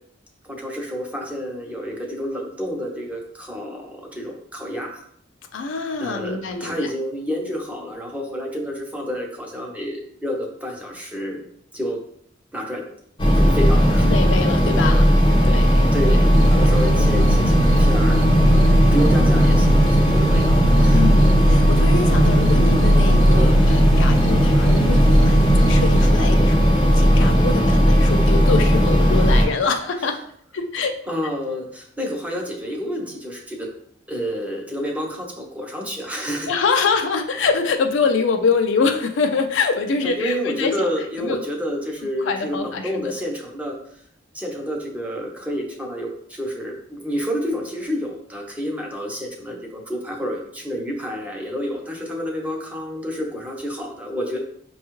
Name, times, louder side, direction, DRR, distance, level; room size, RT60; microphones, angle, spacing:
voice 1, 0.5-5.0 6.0-11.4 11.7-12.0 12.5-12.8 13.4-14.2 15.9-21.0 23.3-23.6 30.0-30.1 31.1-33.7 34.1-36.5 40.0-43.7 44.3-54.4, equal, 10° right, -1 dB, 0.7 m, -29 dB
voice 2, 5.5-6.9 14.0-15.1 15.4-15.9 16.5-16.7 20.9-30.2 30.5-30.9 36.5-40.9 41.2-41.4 42.2-43.1, left 4 dB, 70° left, 5 dB, 0.4 m, -24 dB
sound 1, 13.2-29.5, equal, 25° left, 0.6 m, -16 dB
sound 2, 16.3-26.1, right 5 dB, 80° right, 0.4 m, -25 dB
5.2 x 2.3 x 3.0 m, 0.65 s
head